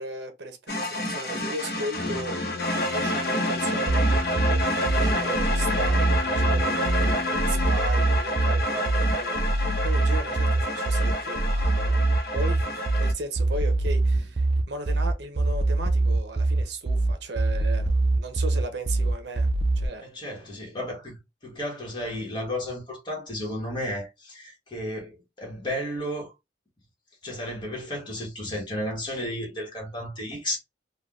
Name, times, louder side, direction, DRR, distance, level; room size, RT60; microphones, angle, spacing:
voice 1, 0.0-2.6 2.9-12.0 12.3-19.5 19.8-20.1, right 2 dB, 70° right, 0.7 m, -37 dB
sound 1, 0.7-13.1, left 1 dB, 60° left, 0.8 m, -28 dB
sound 2, 2.0-7.7, left 3 dB, 80° left, 0.5 m, -34 dB
sound 3, 3.9-19.9, right 2 dB, 30° right, 0.3 m, -24 dB
voice 2, 20.0-26.3 27.2-30.6, left 1 dB, 25° left, 1.1 m, -33 dB
3.3 x 2.2 x 2.3 m
head